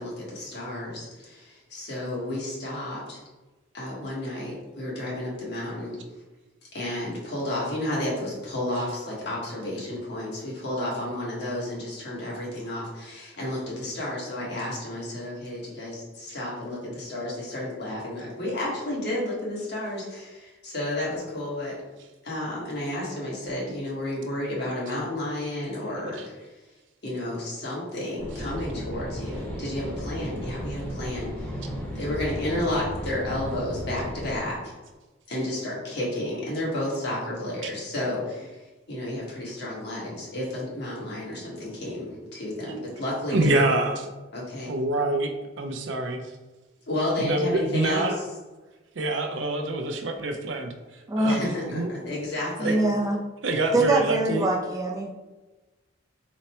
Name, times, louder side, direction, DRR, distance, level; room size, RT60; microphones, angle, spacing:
voice 1, 0.0-3.2 3.7-6.0 6.7-21.8 22.2-26.5 27.0-34.7 35.3-38.5 38.9-43.8 44.3-44.7 46.9-48.3 51.2-52.8, left 1 dB, 60° left, -5 dB, 1.5 m, -31 dB
sound 1, 28.2-34.4, equal, 10° left, 0.9 m, -35 dB
voice 2, 43.3-44.1 44.7-45.3 45.6-46.2 47.2-48.2 49.0-50.7 51.2-51.9 52.6-52.7 53.4-54.5, right 2 dB, 75° right, 4 dB, 0.5 m, -26 dB
voice 3, 51.1-51.4 52.6-53.2 53.7-55.1, right 2 dB, 20° right, 0 dB, 0.4 m, -23 dB
4.0 x 2.1 x 4.3 m, 1.2 s
head